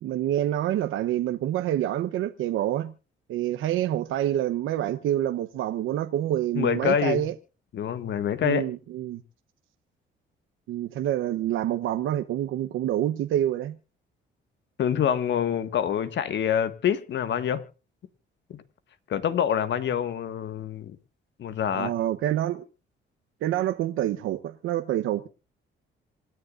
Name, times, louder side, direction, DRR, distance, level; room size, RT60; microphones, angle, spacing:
voice 1, 0.0-2.9 3.3-7.3 8.4-9.2 10.7-13.8 21.7-22.6 23.4-25.3, right 12 dB, 85° right, 1.0 m, -27 dB
voice 2, 6.6-7.2 7.7-8.7 14.8-17.6 18.5-18.6 19.1-21.0 21.4-21.9, left 9 dB, 65° left, 1.8 m, -26 dB
27.0 x 10.5 x 2.6 m
cardioid pair, 90°, 20 cm